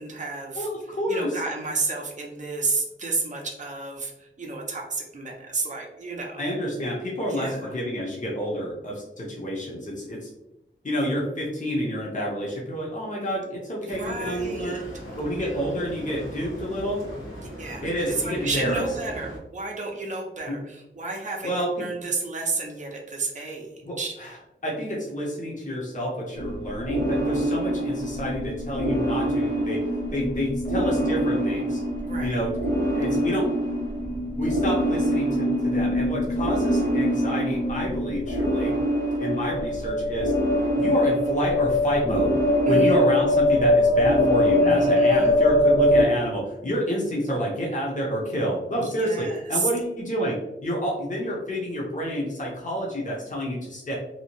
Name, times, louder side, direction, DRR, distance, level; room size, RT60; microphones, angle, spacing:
voice 1, 0.0-0.7 1.1-6.4 7.3-7.7 13.8-14.8 17.4-24.2 32.0-32.4 42.7-43.0 44.6-45.4 48.8-49.7, right 3 dB, 40° right, 0 dB, 0.5 m, -32 dB
voice 2, 0.5-1.3 6.4-10.3 10.8-14.8 15.2-17.0 17.8-18.8 20.5-20.6 21.4-21.7 23.9-24.3 24.6-29.9 30.1-31.8 32.2-32.5 32.9-33.5 34.4-38.8 39.2-40.3 40.8-42.4 42.7-50.4 50.6-53.9, equal, 40° left, -4 dB, 0.7 m, -28 dB
sound 1, 13.9-19.4, equal, 90° left, 1.1 m, -39 dB
sound 2, 26.4-46.0, left 1 dB, 70° left, 1.4 m, -23 dB
2.8 x 2.0 x 2.9 m, 0.90 s
wide cardioid pair, 65°, 20 cm